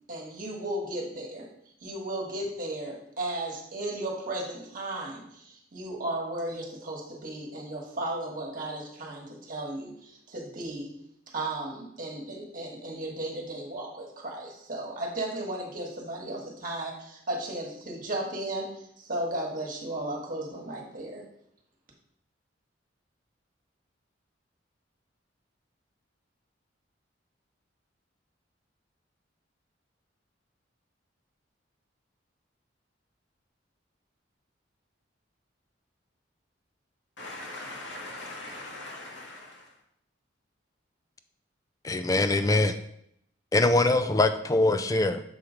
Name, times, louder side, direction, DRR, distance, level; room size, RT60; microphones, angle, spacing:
voice 1, 0.1-1.5 1.8-10.9 11.3-21.3, right 1 dB, 45° right, 1.4 m, -35 dB
voice 2, 37.2-39.6, left 2 dB, 70° left, 1.4 m, -40 dB
voice 3, 41.8-42.7 43.5-45.2, left 2 dB, 15° left, 0.3 m, -23 dB
7.0 x 3.1 x 5.0 m
head